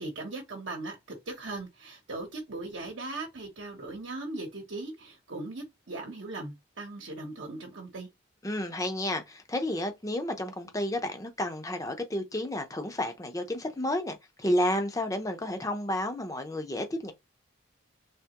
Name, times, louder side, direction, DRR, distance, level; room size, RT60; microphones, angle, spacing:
voice 1, 0.0-8.1, right 2 dB, 65° right, 0.9 m, -39 dB
voice 2, 8.4-17.1, left 1 dB, 15° left, 0.6 m, -31 dB
3.5 x 3.3 x 2.9 m
head